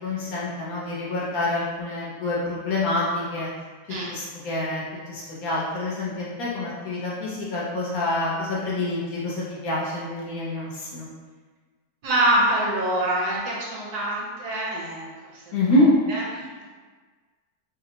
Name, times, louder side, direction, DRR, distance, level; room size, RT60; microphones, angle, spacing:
voice 1, 0.0-3.5 4.1-4.8 5.1-11.1 15.5-15.9, left 2 dB, 65° left, -7 dB, 1.2 m, -27 dB
voice 2, 12.0-15.4 16.1-16.7, right 1 dB, 70° right, -4 dB, 1.2 m, -25 dB
4.2 x 2.1 x 2.8 m, 1.4 s
omnidirectional pair, 1.8 m